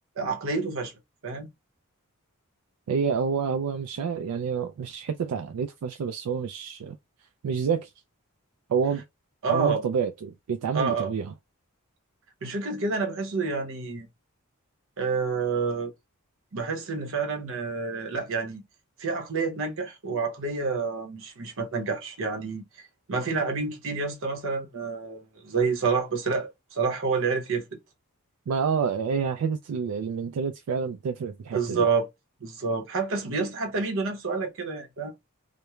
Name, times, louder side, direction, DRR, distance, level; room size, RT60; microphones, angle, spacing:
voice 1, 0.2-0.9 1.2-1.5 9.4-9.8 10.7-11.1 12.4-14.1 15.0-15.9 16.5-18.6 19.0-22.6 23.1-27.6 31.5-32.1 32.4-35.1, right 4 dB, 65° right, 0.8 m, -28 dB
voice 2, 2.9-7.0 7.4-7.9 8.7-9.0 9.5-11.3 28.5-31.9, right 6 dB, 80° right, 0.3 m, -28 dB
3.0 x 2.1 x 2.3 m
head